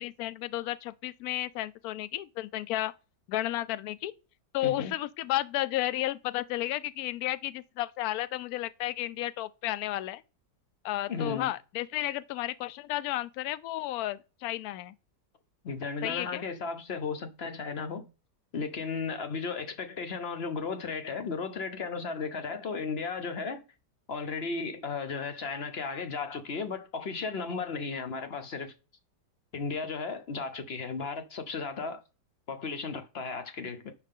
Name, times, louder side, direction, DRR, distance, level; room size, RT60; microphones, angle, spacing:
voice 1, 0.0-2.9 3.3-4.1 4.5-10.2 10.8-14.9 16.0-16.4, left 15 dB, 70° left, 0.9 m, -32 dB
voice 2, 11.1-11.5 15.6-18.1 18.5-23.6 24.1-28.7 29.5-32.0 32.5-33.9, left 4 dB, 45° left, 1.0 m, -35 dB
10.5 x 4.9 x 3.7 m
omnidirectional pair, 1.9 m